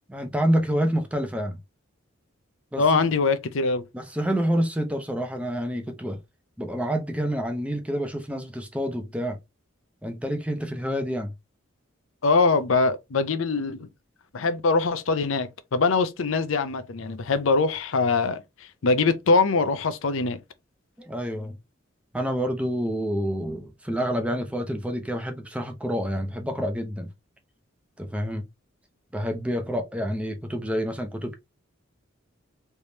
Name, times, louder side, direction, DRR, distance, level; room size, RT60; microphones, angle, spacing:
voice 1, 0.1-1.6 2.7-2.8 3.9-6.2 6.6-9.4 10.0-11.3 21.0-21.6 22.1-27.1 28.0-28.4 29.1-31.4, equal, 5° right, 0.6 m, -28 dB
voice 2, 2.8-3.8 12.2-13.9 14.3-20.4, left 4 dB, 75° left, 0.5 m, -23 dB
3.3 x 3.1 x 2.7 m
head